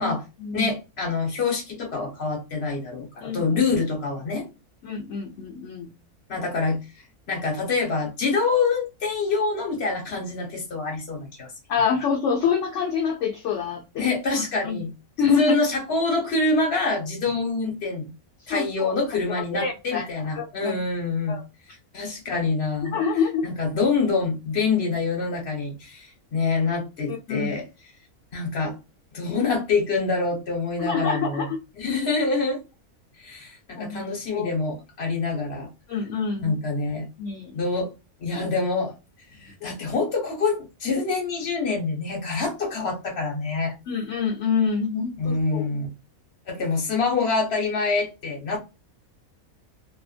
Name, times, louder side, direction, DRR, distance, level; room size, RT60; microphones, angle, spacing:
voice 1, 0.0-0.7 3.2-3.4 4.8-5.9 11.7-14.1 14.6-14.8 15.2-15.4 18.5-18.9 19.4-20.7 21.3-21.4 22.8-23.4 27.1-27.5 30.8-31.6 33.7-34.0 34.3-34.5 35.9-36.6 37.2-37.6 39.6-39.7 43.9-45.7, left 6 dB, 65° left, 0.9 m, -26 dB
voice 2, 0.5-4.5 6.3-6.8 7.3-11.5 14.0-14.9 15.3-18.1 18.5-21.4 21.9-23.0 23.4-27.6 28.3-28.8 29.1-31.5 31.8-32.6 33.2-35.7 36.4-37.1 37.5-37.9 38.2-38.9 39.4-43.7 45.2-45.9 46.5-48.6, left 4 dB, 50° left, 1.3 m, -26 dB
2.8 x 2.4 x 2.4 m
omnidirectional pair, 1.5 m